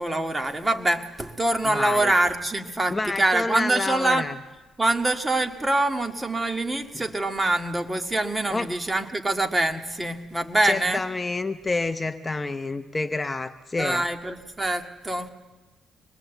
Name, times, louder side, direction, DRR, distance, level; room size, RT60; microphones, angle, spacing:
voice 1, 0.0-4.3 4.8-11.0 13.8-15.3, right 2 dB, 15° right, 6 dB, 1.9 m, -25 dB
voice 2, 1.7-2.1 2.9-4.3 8.5-8.7 10.6-14.0, left 3 dB, 20° left, 10 dB, 0.7 m, -28 dB
25.5 x 21.5 x 8.0 m, 1.2 s
cardioid pair, 90°, 0 cm